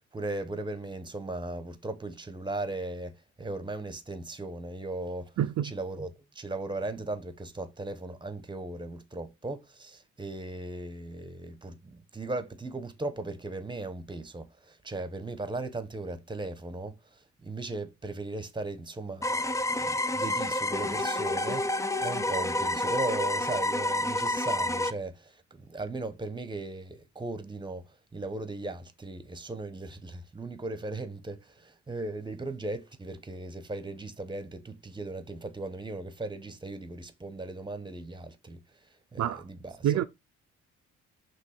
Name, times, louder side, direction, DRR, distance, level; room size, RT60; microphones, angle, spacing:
voice 1, 0.0-5.4 5.6-38.6 39.1-40.1, right 2 dB, 15° right, 1.1 m, -37 dB
voice 2, 5.4-5.7 39.2-39.4 39.8-40.1, right 11 dB, 60° right, 0.6 m, -27 dB
sound 1, 19.2-24.9, left 1 dB, 10° left, 0.5 m, -29 dB
6.1 x 3.2 x 5.8 m
cardioid pair, 90°, 30 cm